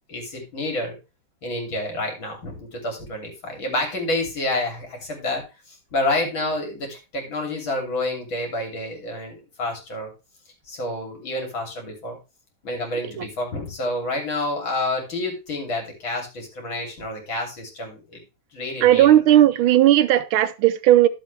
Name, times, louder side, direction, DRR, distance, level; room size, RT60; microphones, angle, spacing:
voice 1, 0.1-0.9 1.4-10.1 10.7-12.2 12.6-18.2 18.5-19.2, left 2 dB, 70° left, 3.9 m, -29 dB
voice 2, 18.8-21.1, right 12 dB, 90° right, 1.6 m, -16 dB
12.0 x 7.4 x 3.3 m
omnidirectional pair, 2.2 m